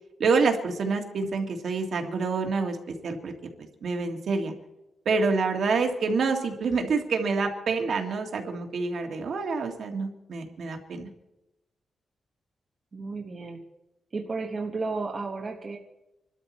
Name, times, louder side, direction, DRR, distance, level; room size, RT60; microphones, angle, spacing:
voice 1, 0.2-3.3 3.8-4.5 5.1-11.1, right 4 dB, 55° right, 4 dB, 1.9 m, -27 dB
voice 2, 12.9-13.6 14.1-15.8, right 3 dB, 30° right, 0 dB, 1.2 m, -33 dB
26.0 x 13.0 x 4.3 m, 0.95 s
wide cardioid pair, 180°, 0 cm